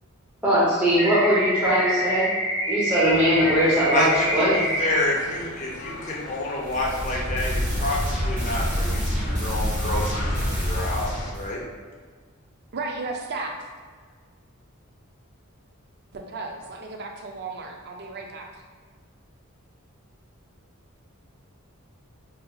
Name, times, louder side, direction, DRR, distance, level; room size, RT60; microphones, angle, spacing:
voice 1, 0.4-2.3 2.7-4.0 4.3-4.5, equal, 5° right, -12 dB, 0.8 m, -20 dB
sound 1, 1.0-5.0, equal, 80° right, 0.9 m, -26 dB
Church bell / Traffic noise roadway noise, 3.0-11.3, left 1 dB, 75° left, 0.9 m, -39 dB
voice 2, 3.9-11.6, left 1 dB, 35° left, -4 dB, 0.6 m, -29 dB
sound 2, 6.6-11.5, equal, 35° right, 1.0 m, -27 dB
voice 3, 12.7-13.6 16.1-18.6, right 3 dB, 50° right, 2 dB, 0.4 m, -34 dB
5.3 x 2.7 x 2.3 m, 1.5 s
head